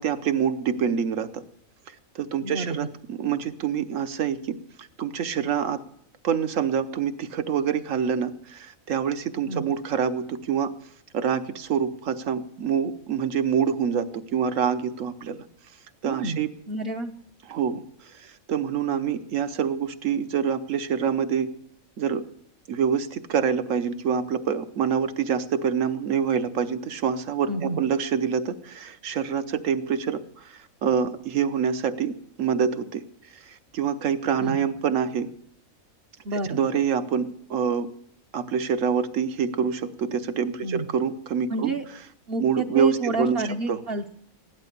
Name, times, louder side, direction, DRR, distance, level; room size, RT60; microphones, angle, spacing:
voice 1, 0.0-1.4 1.9-4.6 5.0-5.8 6.2-10.7 11.1-15.4 16.0-16.5 17.5-17.8 18.1-21.5 22.0-22.3 22.7-33.0 33.3-35.3 36.5-37.9 38.3-41.7 42.4-43.4 43.7-43.8, right 7 dB, 70° right, 10 dB, 1.3 m, -26 dB
voice 2, 2.4-2.8 9.5-9.6 16.1-16.4 16.7-17.1 27.5-27.8 34.4-34.6 36.2-36.6 40.6-40.9 41.5-41.8 42.3-44.1, right 3 dB, 50° right, 2 dB, 0.9 m, -29 dB
16.0 x 11.0 x 6.7 m, 0.70 s
omnidirectional pair, 1.4 m